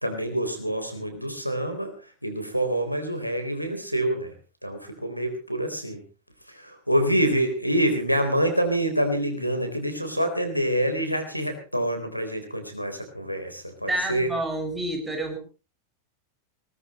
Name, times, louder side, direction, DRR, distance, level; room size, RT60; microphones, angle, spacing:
voice 1, 0.0-4.3 4.6-6.0 6.5-14.3, right 1 dB, 90° right, 5 dB, 3.9 m, -26 dB
voice 2, 13.9-15.4, right 1 dB, 10° right, 4 dB, 5.6 m, -28 dB
20.5 x 19.0 x 3.1 m, 0.34 s
figure-of-eight pair, 90°, 0 cm